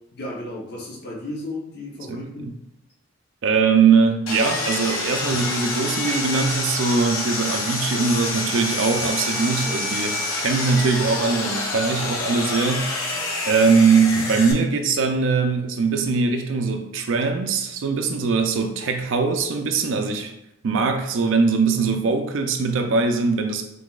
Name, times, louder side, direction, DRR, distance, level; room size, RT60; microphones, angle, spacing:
voice 1, 0.1-2.5, left 1 dB, 50° left, -4 dB, 0.8 m, -34 dB
voice 2, 2.1-2.5 3.4-20.3 20.6-23.6, right 4 dB, 70° right, 4 dB, 0.4 m, -21 dB
Sawing, 4.3-14.5, left 2 dB, 85° left, 0.8 m, -27 dB
5.9 x 2.7 x 2.3 m, 0.84 s
head